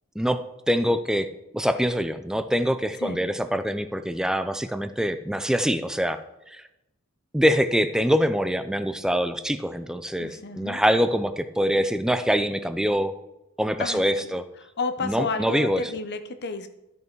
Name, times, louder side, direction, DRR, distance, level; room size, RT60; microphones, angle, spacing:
voice 1, 0.2-1.3 1.5-6.2 6.5-6.6 7.3-13.1 13.6-14.4 15.0-15.8, equal, 5° right, 10 dB, 0.5 m, -24 dB
voice 2, 10.2-10.8 13.8-16.7, left 4 dB, 55° left, 9 dB, 0.8 m, -32 dB
13.0 x 5.4 x 4.6 m, 0.91 s
head